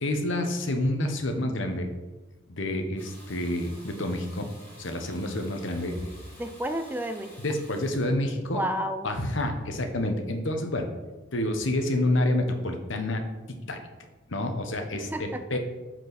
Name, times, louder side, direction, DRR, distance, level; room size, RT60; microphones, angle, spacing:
voice 1, 0.0-1.9 2.5-4.5 4.8-6.1 7.4-8.6 9.0-10.9 11.3-13.2 13.5-13.9 14.3-15.6, left 1 dB, 65° left, 5 dB, 1.1 m, -28 dB
Water tap faucet / Bathtub (filling or washing), 3.0-8.1, equal, 10° left, 3.1 m, -51 dB
voice 2, 6.4-7.4 8.5-9.1 14.9-15.4, equal, 10° right, 7 dB, 0.4 m, -31 dB
12.0 x 4.6 x 4.1 m, 1.2 s
head